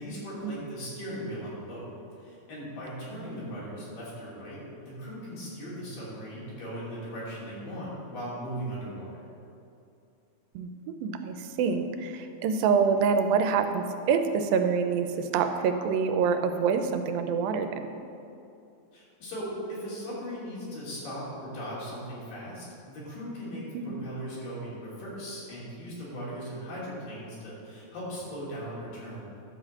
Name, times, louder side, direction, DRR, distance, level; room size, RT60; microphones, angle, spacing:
voice 1, 0.0-1.9 2.2-9.1 18.9-29.3, equal, 70° left, -7 dB, 4.7 m, -38 dB
voice 2, 11.0-17.8 23.7-24.0, right 6 dB, 90° right, 7 dB, 2.4 m, -26 dB
11.5 x 5.0 x 7.4 m, 2.7 s
omnidirectional pair, 4.1 m